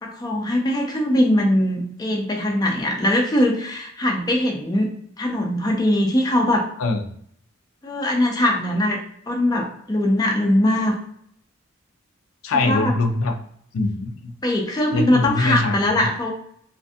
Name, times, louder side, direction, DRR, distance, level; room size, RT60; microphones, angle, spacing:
voice 1, 0.0-4.9 5.2-6.7 7.8-9.0 9.3-11.0 12.5-13.0 14.4-16.3, left 1 dB, 20° left, 0 dB, 0.4 m, -21 dB
voice 2, 12.4-13.4 13.7-14.3 14.9-15.9, left 3 dB, 80° left, 5 dB, 0.4 m, -22 dB
2.5 x 2.5 x 2.2 m, 0.67 s
head